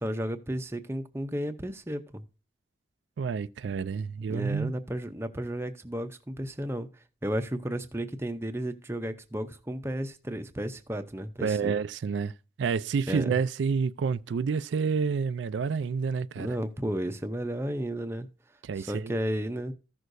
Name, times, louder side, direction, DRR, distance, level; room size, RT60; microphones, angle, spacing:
voice 1, 0.0-2.2 4.3-6.9 7.2-11.7 13.1-13.4 16.4-18.3 18.8-19.7, equal, 15° right, 0.6 m, -33 dB
voice 2, 3.2-4.7 11.4-12.3 12.6-16.6 18.6-19.1, right 5 dB, 75° right, 0.3 m, -29 dB
14.5 x 6.3 x 2.6 m
head